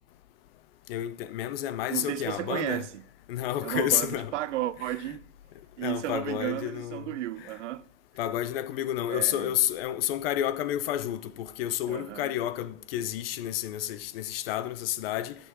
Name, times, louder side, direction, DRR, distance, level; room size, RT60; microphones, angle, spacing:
voice 1, 0.9-2.8 3.3-4.3 5.8-7.1 8.2-15.3, left 12 dB, 55° left, 0.6 m, -30 dB
voice 2, 1.9-3.0 3.6-5.2 5.8-7.8 9.1-9.5 11.9-12.3, right 14 dB, 80° right, 0.6 m, -33 dB
9.7 x 6.4 x 3.5 m
supercardioid pair, 150°, 36 cm